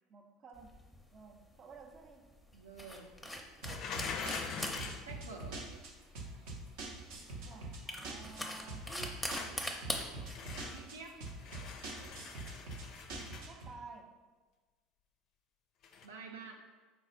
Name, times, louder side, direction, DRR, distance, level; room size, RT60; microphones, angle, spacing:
voice 1, 0.1-0.8 1.1-2.3 7.4-9.3 13.5-14.2, right 4 dB, 40° right, 3 dB, 0.6 m, -53 dB
sound 1, 0.6-13.2, left 1 dB, 5° left, 0.6 m, -44 dB
voice 2, 2.5-3.1 5.0-5.7 10.7-11.2 16.0-16.7, right 4 dB, 85° right, 1 dB, 0.4 m, -49 dB
sound 2, 3.6-5.1 8.8-9.6 10.3-10.9 11.3-13.5 15.8-16.1, left 6 dB, 55° left, 0.4 m, -43 dB
sound 3, 3.6-13.7, right 2 dB, 70° right, 0.8 m, -45 dB
4.1 x 2.3 x 4.3 m, 1.3 s
hypercardioid pair, 70°, 0 cm